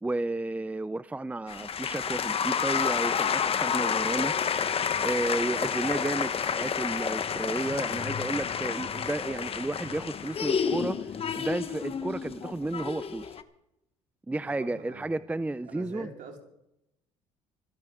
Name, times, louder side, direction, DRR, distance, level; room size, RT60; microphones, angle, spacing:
voice 1, 0.0-4.3 5.0-13.3 14.3-16.1, right 2 dB, 10° right, 16 dB, 0.5 m, -32 dB
sound 1, 1.5-13.4, left 7 dB, 40° left, 1.3 m, -30 dB
voice 2, 14.4-15.2 15.7-16.5, right 4 dB, 60° right, 1 dB, 4.4 m, -45 dB
26.0 x 11.5 x 3.8 m, 0.85 s
supercardioid pair, 70°, 15 cm